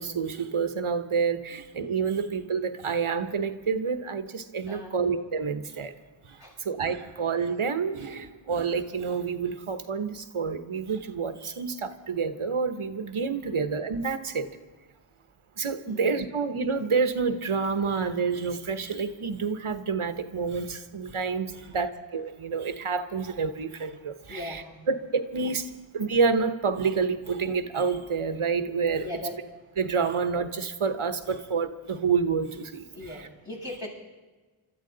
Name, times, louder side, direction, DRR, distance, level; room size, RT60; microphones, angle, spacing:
voice 1, 0.0-5.9 6.3-6.4 6.6-14.5 15.6-24.6 24.9-29.0 29.8-32.9, right 5 dB, 85° right, 9 dB, 1.0 m, -28 dB
voice 2, 4.7-5.0 6.4-6.6 13.4-13.7 15.9-16.3 21.5-21.9 24.3-24.9 29.0-29.4 32.9-33.9, left 1 dB, 60° left, -5 dB, 7.1 m, -40 dB
26.0 x 13.0 x 3.9 m, 1.3 s
wide cardioid pair, 50°, 49 cm